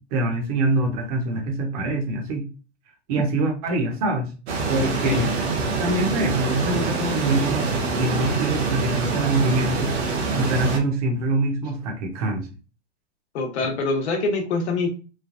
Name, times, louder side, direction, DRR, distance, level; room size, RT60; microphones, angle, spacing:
voice 1, 0.1-2.5 3.1-4.3 4.7-5.3 5.8-12.5, right 2 dB, 30° right, 1 dB, 0.7 m, -24 dB
sound 1, 4.5-10.8, right 4 dB, 60° right, 0.9 m, -25 dB
voice 2, 13.3-14.9, left 3 dB, 60° left, 2 dB, 1.0 m, -25 dB
3.1 x 2.1 x 2.5 m, 0.34 s
hypercardioid pair, 160°, 37 cm